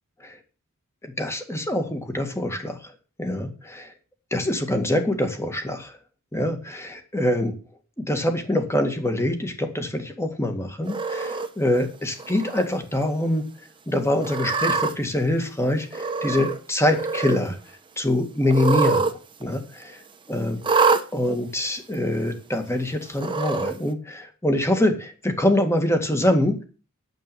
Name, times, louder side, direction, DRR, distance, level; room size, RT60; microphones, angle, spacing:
voice 1, 1.0-2.8 3.2-3.9 4.3-5.9 6.3-7.5 8.0-13.5 13.9-17.6 18.0-19.1 19.4-20.0 20.3-20.8 21.1-26.6, left 1 dB, 15° left, 6 dB, 2.0 m, -24 dB
Cat, 10.9-11.5 12.2-12.6 13.0-13.1 14.2-14.9 15.9-16.6 16.8-17.4 18.5-19.1 19.4-19.5 20.6-21.0 21.9-22.0 23.1-23.7, right 4 dB, 25° right, 1.2 m, -24 dB
9.3 x 7.8 x 6.9 m, 0.34 s
head